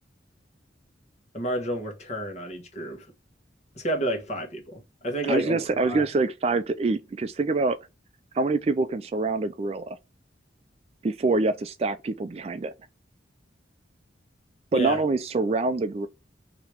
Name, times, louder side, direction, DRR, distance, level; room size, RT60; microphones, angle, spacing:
voice 1, 1.3-3.1 3.7-6.0 14.7-15.0, right 1 dB, 40° left, 1.2 m, -30 dB
voice 2, 5.3-7.8 8.3-10.0 11.0-12.7 14.7-16.1, right 3 dB, 35° right, 0.3 m, -25 dB
3.3 x 2.9 x 4.5 m
head